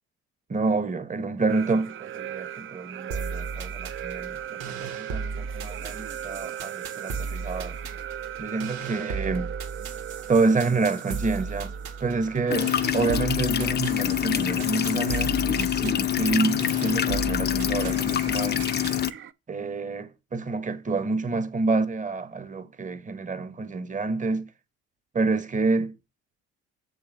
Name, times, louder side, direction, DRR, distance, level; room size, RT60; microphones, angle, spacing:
voice 1, 0.5-7.8 8.4-9.5 10.3-11.7 12.0-18.6 19.5-24.5 25.1-25.9, right 3 dB, 25° right, 1.0 m, -28 dB
sound 1, 1.5-19.3, right 10 dB, 40° right, 0.6 m, -40 dB
sound 2, 3.1-19.1, right 4 dB, 60° right, 1.7 m, -36 dB
sound 3, 12.5-19.1, left 11 dB, 30° left, 0.6 m, -25 dB
6.8 x 4.0 x 6.3 m
hypercardioid pair, 65°, 32 cm